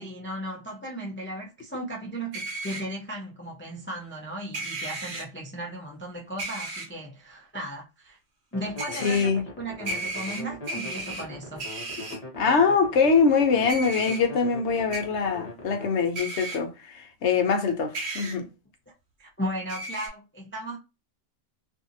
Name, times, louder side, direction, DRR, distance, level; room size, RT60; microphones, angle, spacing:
voice 1, 0.0-8.2 8.5-11.6 18.9-19.0 19.2-20.8, right 1 dB, 20° left, 0.3 m, -36 dB
sound 1, 2.3-2.8 4.5-5.2 6.4-6.9 8.8-9.2 9.9-11.2 11.6-12.2 13.7-14.2 14.9-15.0 16.2-16.6 17.9-18.4 19.7-20.1, right 2 dB, 65° right, 1.0 m, -34 dB
sound 2, 8.5-15.9, left 2 dB, 35° left, 0.9 m, -41 dB
voice 2, 9.0-9.4 12.4-18.5, left 5 dB, 70° left, 0.9 m, -23 dB
2.6 x 2.6 x 2.6 m
omnidirectional pair, 1.2 m